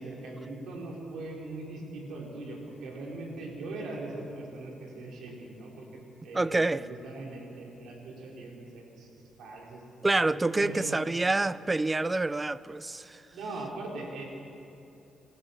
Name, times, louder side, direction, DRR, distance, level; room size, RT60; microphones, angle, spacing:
voice 1, 0.0-9.8 10.5-11.0 13.3-14.2, right 2 dB, 80° right, 4.4 m, -40 dB
voice 2, 6.3-6.9 10.0-13.2, right 2 dB, 20° right, 0.6 m, -27 dB
27.0 x 15.0 x 7.3 m
cardioid pair, 85°, 0 cm